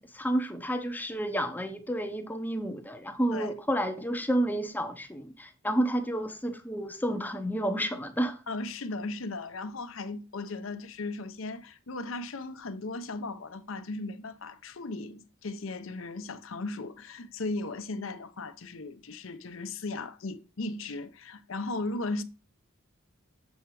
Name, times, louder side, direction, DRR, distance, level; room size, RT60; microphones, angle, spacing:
voice 1, 0.0-8.4, right 1 dB, 10° left, 0.7 m, -30 dB
voice 2, 8.5-22.2, left 2 dB, 70° left, 0.7 m, -36 dB
7.2 x 4.5 x 4.7 m
head